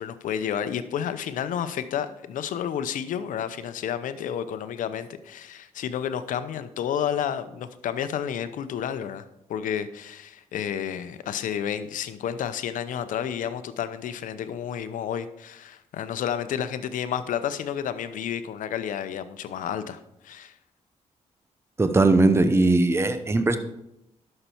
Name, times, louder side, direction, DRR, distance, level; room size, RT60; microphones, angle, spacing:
voice 1, 0.0-9.2 9.5-20.5, left 9 dB, 85° left, 12 dB, 0.7 m, -31 dB
voice 2, 21.8-23.6, right 2 dB, 20° right, 9 dB, 0.8 m, -19 dB
11.0 x 6.8 x 4.5 m, 0.83 s
cardioid pair, 90°, 13 cm